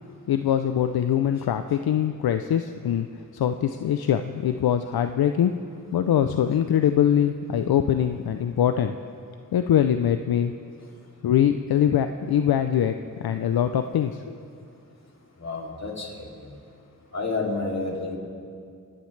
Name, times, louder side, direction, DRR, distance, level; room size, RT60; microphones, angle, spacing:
voice 1, 0.3-5.5 5.9-8.9 9.5-10.5 11.2-14.4, left 9 dB, 75° left, 8 dB, 0.5 m, -23 dB
voice 2, 15.4-16.3 17.1-18.2, left 3 dB, 45° left, -2 dB, 2.7 m, -29 dB
26.5 x 10.5 x 3.2 m, 2.4 s
wide cardioid pair, 70°, 37 cm